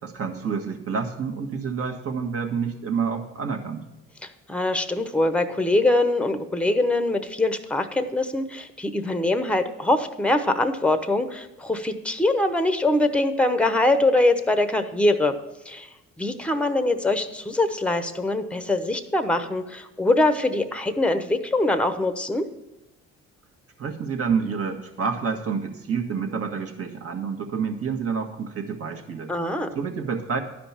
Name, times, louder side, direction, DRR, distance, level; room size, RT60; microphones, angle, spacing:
voice 1, 0.0-3.9 23.8-29.3 29.7-30.4, right 6 dB, 50° right, 4 dB, 1.6 m, -28 dB
voice 2, 4.5-15.4 15.7-15.9 16.2-22.5 29.3-29.7, left 2 dB, 5° left, 9 dB, 0.9 m, -23 dB
11.5 x 5.2 x 7.2 m, 0.98 s
cardioid pair, 90°, 30 cm